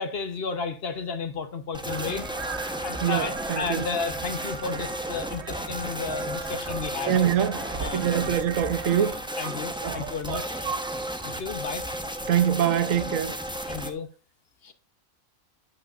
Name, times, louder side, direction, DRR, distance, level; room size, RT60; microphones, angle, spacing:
voice 1, 0.0-2.3 2.8-7.2 7.8-8.4 9.4-10.7 11.2-11.9 13.7-14.1 14.6-14.7, left 5 dB, 50° left, 1.0 m, -33 dB
sound 1, 1.7-13.9, equal, 5° right, 0.7 m, -34 dB
sound 2, 1.9-9.1, right 5 dB, 55° right, 1.3 m, -39 dB
voice 2, 3.0-3.9 7.0-7.7 7.9-9.5 9.8-11.3 12.3-13.4, right 9 dB, 75° right, 1.1 m, -26 dB
8.8 x 8.4 x 2.4 m
omnidirectional pair, 1.4 m